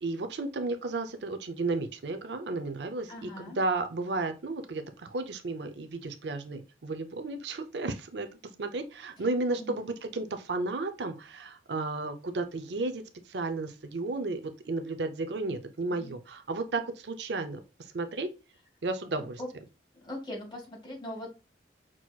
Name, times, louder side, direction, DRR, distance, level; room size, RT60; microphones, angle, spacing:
voice 1, 0.0-8.3 8.6-17.6 17.9-18.3 18.8-19.4, right 3 dB, 70° right, 8 dB, 0.6 m, -33 dB
voice 2, 3.1-3.6 9.6-9.9 16.0-16.1 19.4-19.5 20.0-21.5, left 1 dB, 25° left, -2 dB, 1.8 m, -40 dB
6.1 x 2.9 x 2.3 m, 0.31 s
head